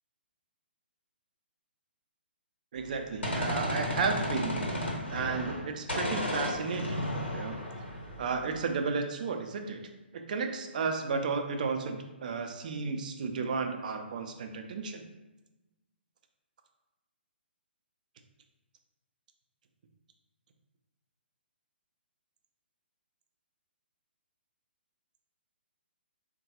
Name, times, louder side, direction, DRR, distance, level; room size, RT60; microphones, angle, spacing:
voice 1, 2.7-4.7 5.1-7.0 7.3-7.6 8.2-9.8 10.1-15.0, right 4 dB, 45° right, 5 dB, 0.4 m, -33 dB
Gunshot gunfire, 2.8-5.6 5.9-8.6, left 1 dB, 80° left, 1.0 m, -33 dB
3.6 x 2.2 x 2.7 m, 1.0 s
figure-of-eight pair, 130°, 6 cm